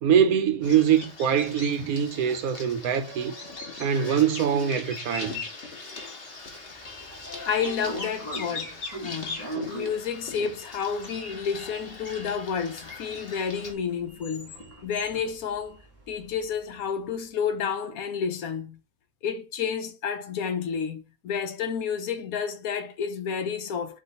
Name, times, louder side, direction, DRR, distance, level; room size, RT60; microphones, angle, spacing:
voice 1, 0.0-3.3 3.8-5.4, right 8 dB, 70° right, 0.9 m, -23 dB
Bird vocalization bird call bird song, 0.6-13.7, left 3 dB, 40° left, 1.2 m, -40 dB
Sliding door, 6.7-16.8, right 1 dB, 10° left, 1.2 m, -42 dB
voice 2, 7.5-9.4 9.7-14.5 14.8-15.8 16.1-18.8 19.2-24.0, left 7 dB, 70° left, 1.0 m, -30 dB
5.2 x 2.5 x 4.0 m
omnidirectional pair, 1.7 m